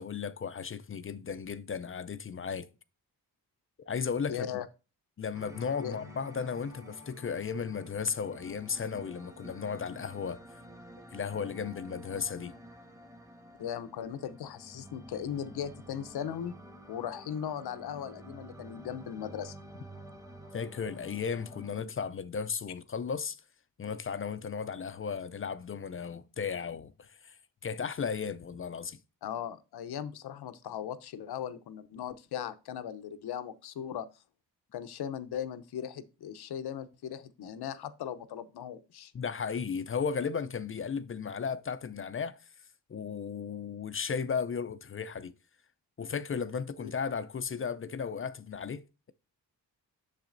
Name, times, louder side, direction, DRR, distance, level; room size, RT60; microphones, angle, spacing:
voice 1, 0.0-2.7 3.9-4.5 5.2-10.4 11.1-12.5 20.5-23.4 23.8-29.0 39.1-42.4 42.9-45.3 46.0-49.1, left 6 dB, 35° left, 0.5 m, -35 dB
voice 2, 4.3-4.7 5.8-5.9 13.6-16.5 16.9-19.6 29.2-34.1 34.7-39.1 46.8-46.9, left 9 dB, 80° left, 0.8 m, -38 dB
sound 1, 5.3-21.8, equal, 10° right, 1.3 m, -50 dB
7.3 x 6.8 x 2.6 m
cardioid pair, 80°, 38 cm